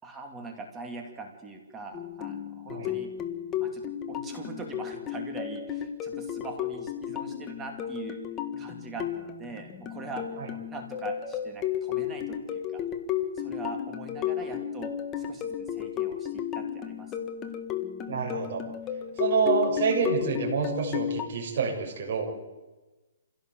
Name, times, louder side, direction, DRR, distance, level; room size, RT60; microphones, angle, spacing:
voice 1, 0.0-3.1 3.6-8.2 8.6-10.3 10.7-12.9 13.3-14.9 15.2-17.2, right 3 dB, 10° right, 3 dB, 2.6 m, -42 dB
sound 1, 1.9-21.3, left 10 dB, 15° left, 1.6 m, -33 dB
voice 2, 18.1-18.6 19.2-22.2, right 5 dB, 45° right, 0 dB, 6.9 m, -27 dB
27.5 x 17.0 x 7.9 m, 1.2 s
hypercardioid pair, 170°, 0 cm